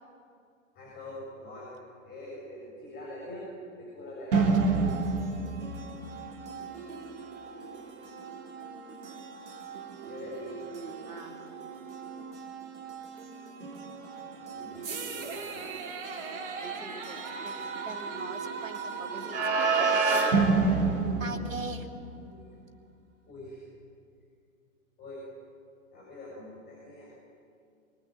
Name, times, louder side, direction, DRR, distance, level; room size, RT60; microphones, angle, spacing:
voice 1, 0.8-4.4 10.1-10.6 14.4-15.6 20.3-21.3 22.2-22.6 23.3-23.6 25.0-25.3 25.9-27.1, left 1 dB, 25° left, -3 dB, 7.1 m, -44 dB
sound 1, 4.3-22.0, right 4 dB, 55° right, 3.7 m, -31 dB
voice 2, 10.4-11.5 16.6-20.5 21.2-21.9, right 3 dB, 75° right, 4 dB, 3.0 m, -43 dB
27.5 x 23.5 x 9.3 m, 2.4 s
figure-of-eight pair, 110°, 41 cm